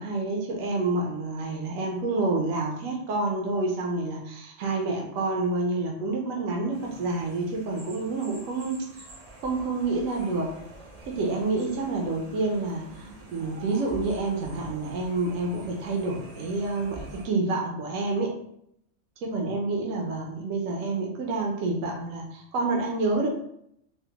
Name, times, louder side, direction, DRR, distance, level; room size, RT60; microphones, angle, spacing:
voice 1, 0.0-9.0 9.4-10.5 11.1-18.4 19.2-23.3, right 3 dB, 80° right, 0 dB, 1.0 m, -28 dB
sound 1, 6.7-17.3, right 2 dB, 50° right, 0.5 m, -46 dB
3.4 x 2.0 x 2.8 m, 0.73 s
omnidirectional pair, 1.3 m